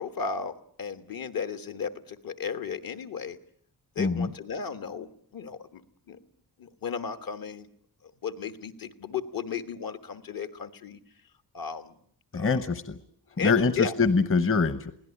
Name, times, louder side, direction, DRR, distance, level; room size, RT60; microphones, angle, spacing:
voice 1, 0.0-3.4 3.9-5.1 5.3-5.8 6.1-6.2 6.6-7.7 8.2-11.0 11.5-11.9 12.3-12.6 13.4-13.9, left 6 dB, 65° left, 10 dB, 1.5 m, -34 dB
voice 2, 4.0-4.3 12.3-13.0 13.4-14.9, left 4 dB, 35° left, 13 dB, 1.0 m, -24 dB
23.0 x 17.0 x 9.9 m, 0.64 s
wide cardioid pair, 170°, 37 cm